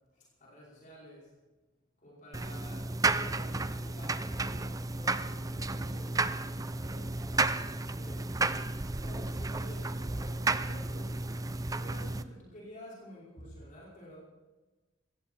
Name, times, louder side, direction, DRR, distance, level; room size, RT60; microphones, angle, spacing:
voice 1, 0.1-1.3 2.0-8.4 9.0-11.2 11.7-14.2, equal, 40° left, -6 dB, 5.3 m, -51 dB
sound 1, 2.3-12.2, right 3 dB, 20° right, 0.6 m, -32 dB
20.0 x 16.0 x 4.5 m, 1.2 s
head